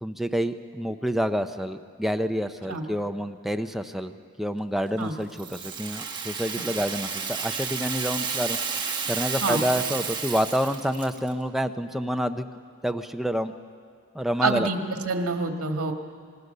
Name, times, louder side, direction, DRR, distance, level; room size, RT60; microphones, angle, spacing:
voice 1, 0.0-4.1 4.4-12.5 12.8-13.5 14.1-14.7, equal, ahead, 7 dB, 0.6 m, -28 dB
Rattle (instrument), 5.3-11.3, right 6 dB, 20° right, 1.5 m, -31 dB
voice 2, 14.4-14.8 15.1-15.9, right 3 dB, 80° right, 4 dB, 1.8 m, -26 dB
26.0 x 20.5 x 6.7 m, 2.1 s
head